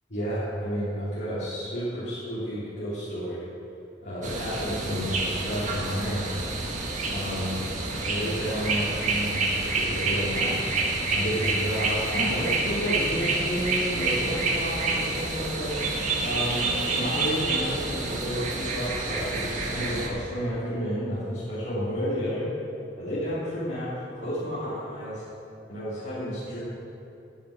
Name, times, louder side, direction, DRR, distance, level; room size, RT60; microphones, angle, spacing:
voice 1, 0.1-3.4 4.0-6.4 7.1-7.6 8.0-10.5 11.1-15.8 16.2-22.5 23.0-25.2 25.7-26.6, equal, 80° left, -12 dB, 3.2 m, -31 dB
sound 1, 4.2-20.1, right 3 dB, 45° right, 1.7 m, -28 dB
15.5 x 9.3 x 5.0 m, 2.9 s
head